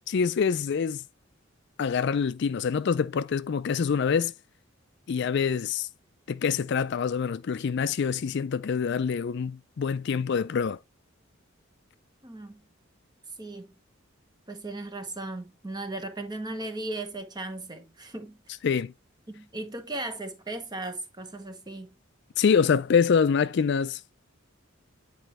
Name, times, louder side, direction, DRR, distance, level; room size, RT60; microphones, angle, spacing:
voice 1, 0.1-1.0 1.8-4.3 5.1-5.9 6.3-10.8 18.6-18.9 22.4-24.0, left 6 dB, 55° left, 0.4 m, -25 dB
voice 2, 12.2-12.6 13.4-13.7 14.5-18.4 19.3-21.9, right 2 dB, 20° right, 1.1 m, -37 dB
9.0 x 4.3 x 3.1 m
head